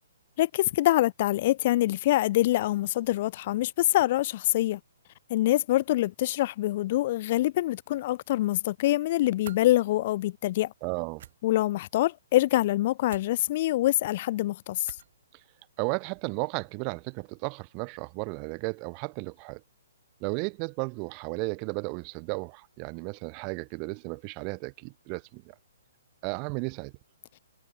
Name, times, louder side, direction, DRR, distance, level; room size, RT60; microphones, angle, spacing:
voice 1, 0.4-4.8 5.3-10.7 11.4-14.9, left 15 dB, 45° left, 0.6 m, -25 dB
sound 1, 9.4-9.6 11.1-11.3 13.1-13.3 14.8-15.2, right 11 dB, 50° right, 7.4 m, -45 dB
voice 2, 10.8-11.2 15.8-19.6 20.2-25.4 26.2-26.9, right 37 dB, 30° right, 1.0 m, -34 dB
figure-of-eight pair, 130°, 0 cm